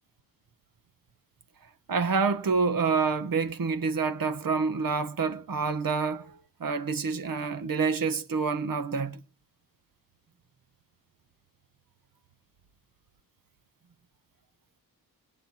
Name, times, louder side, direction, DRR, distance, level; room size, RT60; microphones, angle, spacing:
voice 1, 1.9-9.2, right 5 dB, 60° right, 1.4 m, -27 dB
21.0 x 9.0 x 3.0 m
cardioid pair, 75°, 39 cm